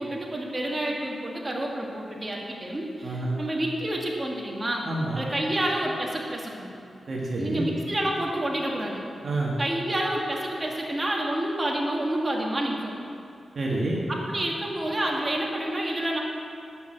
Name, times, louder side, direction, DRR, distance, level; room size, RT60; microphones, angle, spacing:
voice 1, 0.0-4.9 5.2-6.7 7.4-9.0 9.6-12.9 14.1-16.2, right 1 dB, 30° right, -2 dB, 2.1 m, -29 dB
voice 2, 3.0-3.4 4.8-5.2 7.1-7.7 9.2-9.5 13.5-14.0, right 2 dB, 60° right, -3 dB, 1.7 m, -28 dB
10.0 x 6.2 x 7.9 m, 2.5 s
cardioid pair, 55°, 0 cm